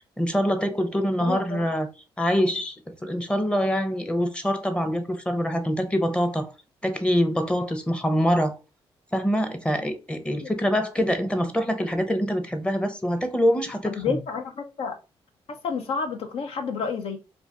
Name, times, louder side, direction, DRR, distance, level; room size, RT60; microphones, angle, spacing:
voice 1, 0.0-1.9 2.2-6.5 6.8-8.6 9.1-14.2, equal, 10° left, 0.7 m, -25 dB
voice 2, 1.2-1.6 10.4-10.5 13.9-15.0 15.5-17.2, left 5 dB, 70° left, 0.6 m, -30 dB
2.5 x 2.4 x 3.4 m
supercardioid pair, 60°, 11 cm